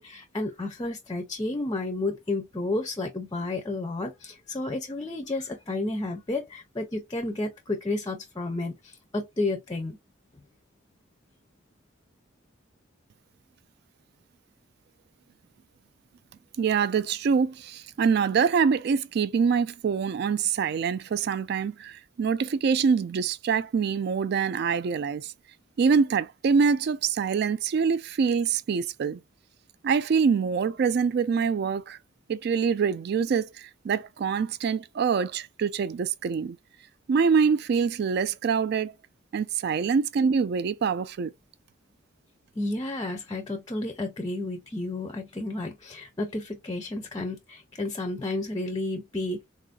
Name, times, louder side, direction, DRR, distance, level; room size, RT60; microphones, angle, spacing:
voice 1, 0.0-10.0 42.6-49.4, left 2 dB, 20° left, 0.5 m, -31 dB
voice 2, 16.6-25.3 25.8-29.2 29.8-32.0 32.3-36.6 37.1-38.9 39.3-41.3, right 6 dB, 55° right, 0.3 m, -25 dB
3.8 x 2.5 x 2.2 m
head